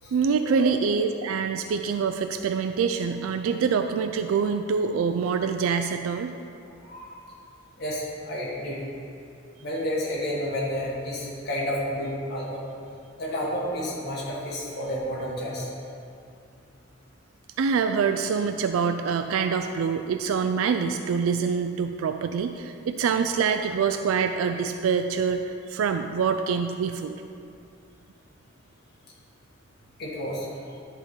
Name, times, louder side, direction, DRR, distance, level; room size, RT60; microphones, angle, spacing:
voice 1, 0.1-6.3 17.6-27.2, right 6 dB, 80° right, 7 dB, 0.3 m, -25 dB
voice 2, 6.8-7.2 7.8-8.8 9.6-12.6 13.2-15.7 30.0-30.5, equal, 50° left, -6 dB, 1.4 m, -30 dB
11.0 x 3.7 x 5.6 m, 2.5 s
head